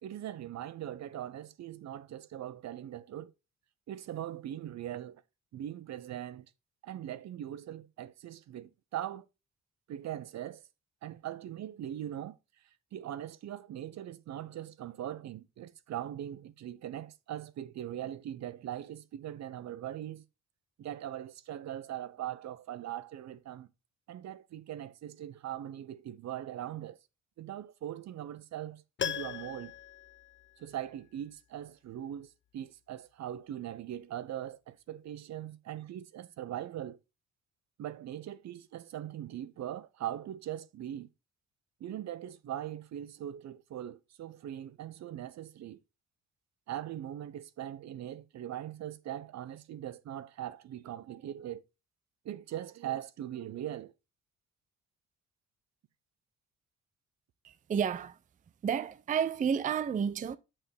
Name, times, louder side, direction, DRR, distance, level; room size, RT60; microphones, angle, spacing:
voice 1, 0.0-3.3 3.9-5.2 5.5-6.4 6.8-9.3 9.9-10.6 11.0-12.4 12.9-20.2 20.8-23.7 24.1-27.0 27.4-29.7 30.6-37.0 37.8-41.1 41.8-45.8 46.7-51.6 52.2-53.9, right 11 dB, 65° right, 0.7 m, -41 dB
Piano, 29.0-31.1 31.4-31.5, left 9 dB, 40° left, 0.7 m, -39 dB
voice 2, 57.4-58.2 58.6-60.4, right 7 dB, 25° right, 0.4 m, -31 dB
6.7 x 5.9 x 3.3 m
cardioid pair, 90°, 30 cm